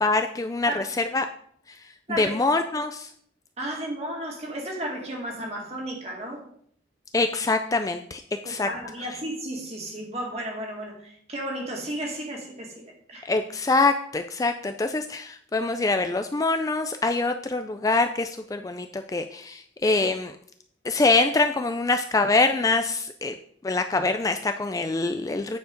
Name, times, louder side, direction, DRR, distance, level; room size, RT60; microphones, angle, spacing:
voice 1, 0.0-1.3 2.2-3.1 7.1-8.7 13.3-20.4 20.8-23.3 23.6-25.6, left 3 dB, 20° left, 7 dB, 0.3 m, -24 dB
voice 2, 3.6-6.4 8.6-12.8 13.1-13.3, right 1 dB, 35° right, 0 dB, 1.9 m, -33 dB
9.1 x 4.7 x 5.2 m, 0.64 s
head